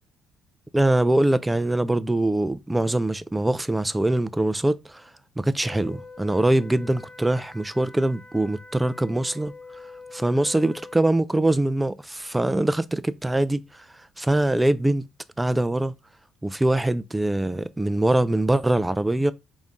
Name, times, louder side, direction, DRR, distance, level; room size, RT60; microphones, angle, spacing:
voice 1, 0.7-5.1 5.4-9.5 10.1-13.9 14.2-15.1 15.4-15.9 16.4-19.3, right 1 dB, 10° right, 0.3 m, -23 dB
Wind instrument woodwind instrument, 5.6-11.1, left 3 dB, 55° left, 0.9 m, -45 dB
4.0 x 2.5 x 3.5 m
cardioid pair, 95°, 0 cm